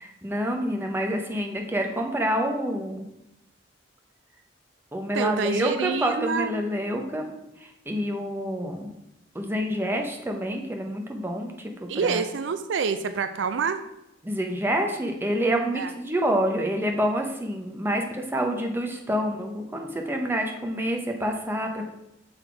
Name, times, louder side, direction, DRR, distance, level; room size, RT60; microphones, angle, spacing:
voice 1, 0.0-3.0 4.9-7.3 7.6-8.9 9.3-12.2 14.2-21.9, equal, 10° right, 2 dB, 0.8 m, -27 dB
voice 2, 5.1-6.6 11.9-13.8 15.8-15.9, right 5 dB, 80° right, 10 dB, 0.4 m, -27 dB
6.6 x 4.1 x 4.5 m, 0.86 s
head